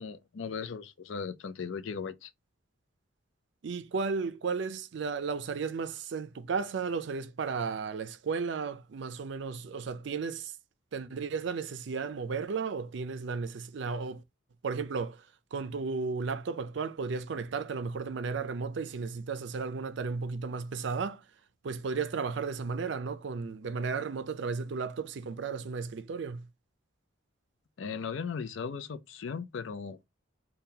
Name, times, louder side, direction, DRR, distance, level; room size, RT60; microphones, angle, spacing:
voice 1, 0.0-2.3 27.8-30.0, left 5 dB, 75° left, 0.4 m, -37 dB
voice 2, 3.6-10.5 10.9-14.2 14.6-21.2 21.6-26.5, right 5 dB, 65° right, 0.4 m, -34 dB
2.8 x 2.3 x 3.6 m
head